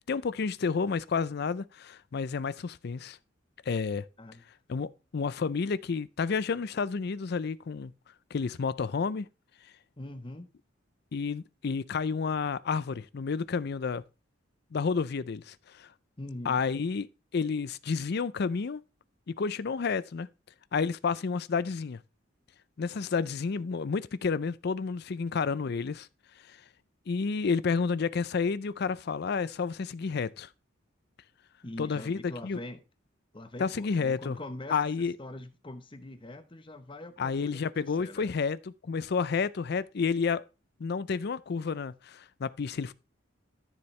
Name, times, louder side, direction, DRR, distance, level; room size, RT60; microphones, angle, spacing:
voice 1, 0.1-3.2 3.7-4.0 4.7-7.9 8.3-9.3 11.1-14.0 14.7-15.9 16.5-17.1 17.3-18.8 19.3-20.3 20.7-22.0 22.8-26.1 26.5-26.6 27.1-30.5 31.8-32.6 33.6-34.4 34.7-35.2 37.2-38.6 38.8-40.4 40.8-42.9, left 5 dB, 55° left, 0.5 m, -30 dB
voice 2, 10.0-10.5 16.2-16.6 31.6-32.8 33.3-38.3, left 1 dB, 25° left, 1.0 m, -43 dB
13.5 x 7.0 x 3.2 m
head